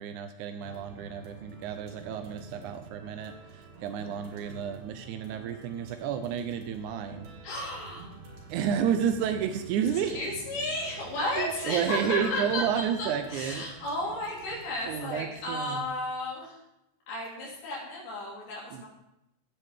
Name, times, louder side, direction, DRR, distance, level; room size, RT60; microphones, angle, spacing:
voice 1, 0.0-7.3 8.5-10.3 11.2-13.6 14.8-15.9 18.7-18.9, right 8 dB, 80° right, 7 dB, 1.8 m, -31 dB
sound 1, 0.6-15.9, right 4 dB, 65° right, 3.3 m, -48 dB
voice 2, 7.4-8.1 10.1-16.6 17.1-18.9, left 1 dB, 90° left, -5 dB, 4.7 m, -33 dB
15.5 x 8.4 x 3.6 m, 0.87 s
omnidirectional pair, 4.3 m